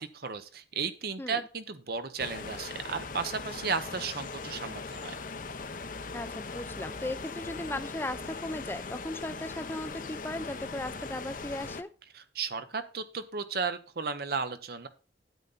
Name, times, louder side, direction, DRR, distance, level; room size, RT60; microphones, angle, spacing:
voice 1, 0.0-5.1 12.1-14.9, right 5 dB, 55° right, 11 dB, 0.8 m, -34 dB
sound 1, 2.2-11.8, left 4 dB, 45° left, 0.8 m, -40 dB
voice 2, 6.1-11.9, left 1 dB, 10° left, 13 dB, 0.5 m, -37 dB
9.3 x 8.0 x 4.0 m, 0.34 s
head